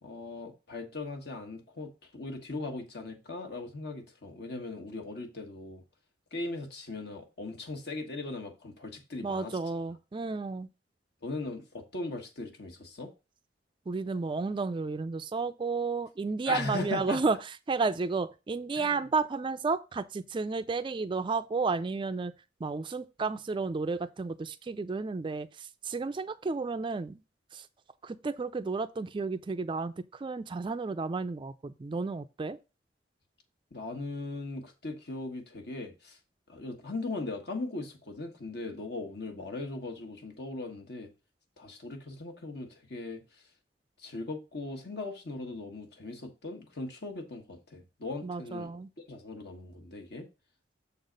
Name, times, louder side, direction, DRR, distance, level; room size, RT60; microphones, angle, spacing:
voice 1, 0.0-5.8 6.3-9.6 11.2-13.1 16.5-17.2 18.8-19.0 33.7-36.2 36.5-41.1 41.6-43.2 44.0-48.7 49.1-50.3, left 2 dB, 60° left, 1.4 m, -39 dB
voice 2, 9.2-10.7 13.9-17.4 17.7-22.3 22.6-27.2 27.5-27.6 28.0-32.6 48.2-48.9, right 4 dB, 25° right, 0.3 m, -32 dB
7.0 x 4.0 x 5.1 m
head